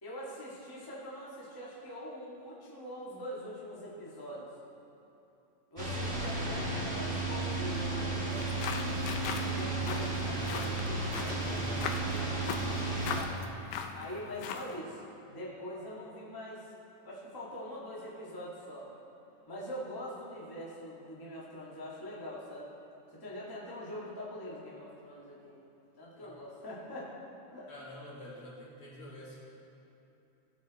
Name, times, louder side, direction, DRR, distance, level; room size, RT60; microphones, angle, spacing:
voice 1, 0.0-4.5 5.7-8.7 9.4-13.4 13.9-15.0 15.3-16.7 17.0-18.9 19.5-22.7 23.1-25.6 26.0-27.1 27.5-27.7, left 1 dB, 10° left, -6 dB, 1.0 m, -43 dB
sound 1, 5.8-13.2, right 2 dB, 25° right, 1.9 m, -33 dB
sound 2, 8.3-14.8, left 6 dB, 90° left, 2.2 m, -40 dB
voice 2, 27.7-29.4, left 1 dB, 50° left, -6 dB, 2.6 m, -47 dB
17.0 x 6.5 x 4.2 m, 3.0 s
omnidirectional pair, 3.6 m